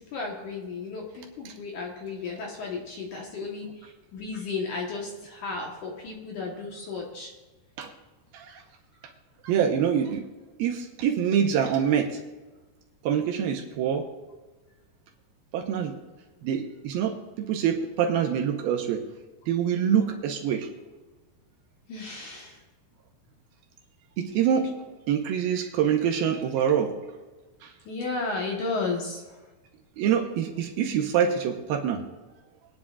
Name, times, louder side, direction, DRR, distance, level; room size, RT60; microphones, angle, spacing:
voice 1, 0.1-3.7 4.1-7.3 21.9-22.6 27.9-29.2, left 4 dB, 60° left, -1 dB, 2.2 m, -33 dB
voice 2, 9.4-10.2 10.6-12.1 13.0-14.0 15.5-15.9 16.4-19.0 19.5-20.7 24.2-24.7 25.1-26.9 27.6-27.7 30.0-32.0, right 8 dB, 75° right, 3 dB, 2.5 m, -25 dB
22.5 x 10.0 x 2.4 m, 1.2 s
omnidirectional pair, 4.8 m